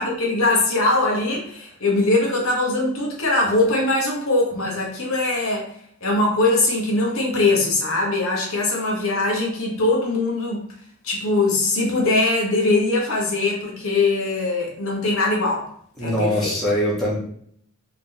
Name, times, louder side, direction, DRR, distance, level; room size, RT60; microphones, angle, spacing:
voice 1, 0.0-5.7 6.0-10.6 11.0-15.7 16.0-16.5, left 2 dB, 65° left, -2 dB, 1.1 m, -21 dB
voice 2, 16.0-17.2, equal, ahead, -8 dB, 1.3 m, -22 dB
3.6 x 2.9 x 3.5 m, 0.64 s
head